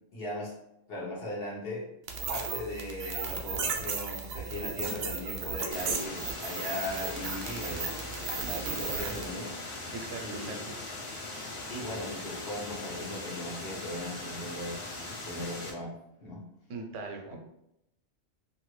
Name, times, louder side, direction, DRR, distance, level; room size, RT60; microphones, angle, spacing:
voice 1, 0.1-0.5 0.9-1.9 2.3-8.0 8.5-9.5 10.2-10.6 11.7-15.9 16.2-16.4 17.3-17.4, left 1 dB, 55° left, -5 dB, 1.1 m, -38 dB
sound 1, 2.1-9.3, right 5 dB, 65° right, 0.7 m, -35 dB
sound 2, 5.7-15.7, left 2 dB, 40° left, 0.4 m, -40 dB
voice 2, 8.6-9.3 9.7-10.7 16.7-17.4, right 3 dB, 85° right, 3 dB, 1.0 m, -41 dB
2.7 x 2.6 x 3.1 m, 0.81 s
omnidirectional pair, 1.2 m